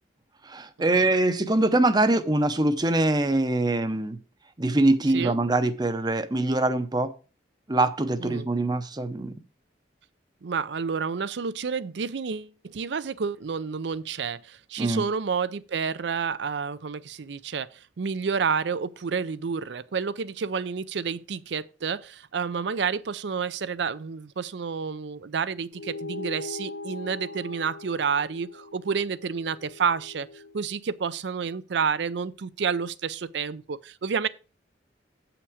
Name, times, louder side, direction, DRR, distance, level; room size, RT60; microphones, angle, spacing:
voice 1, 0.4-4.2 4.6-7.1 7.7-9.3 14.8-15.0, right 2 dB, 25° right, 0.6 m, -23 dB
voice 2, 10.4-30.3 30.5-34.3, right 6 dB, 70° right, 0.5 m, -29 dB
sound 1, 25.7-30.5, left 3 dB, 70° left, 1.3 m, -40 dB
8.2 x 5.9 x 4.9 m
head